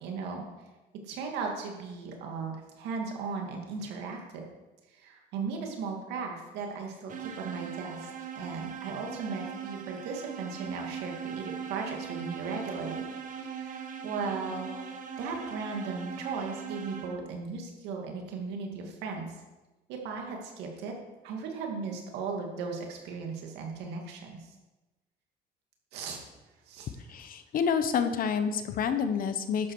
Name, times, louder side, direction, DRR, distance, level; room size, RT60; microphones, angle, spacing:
voice 1, 0.0-0.4 1.1-4.4 5.0-13.1 13.4-14.7 15.2-19.4 19.9-20.9 21.2-24.4 25.9-26.2 26.7-27.1, right 4 dB, 90° right, 1 dB, 2.4 m, -37 dB
sound 1, 7.1-17.4, right 7 dB, 50° right, 1.4 m, -40 dB
voice 2, 27.1-29.7, left 6 dB, 55° left, 9 dB, 1.1 m, -28 dB
11.5 x 8.5 x 4.8 m, 1.1 s
cardioid pair, 110°, 17 cm